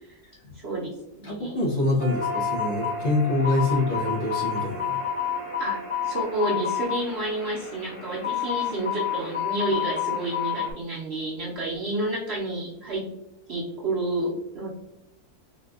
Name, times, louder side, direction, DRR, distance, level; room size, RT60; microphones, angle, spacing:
voice 1, 0.5-1.6 5.6-13.1 13.5-14.7, right 1 dB, 55° right, -5 dB, 0.7 m, -30 dB
voice 2, 1.2-5.0, left 2 dB, 55° left, -4 dB, 0.9 m, -25 dB
sound 1, 2.0-7.9, right 3 dB, 70° right, 0.3 m, -37 dB
sound 2, 2.1-10.7, left 9 dB, 30° left, 0.6 m, -30 dB
3.9 x 2.5 x 2.3 m, 0.86 s
omnidirectional pair, 1.7 m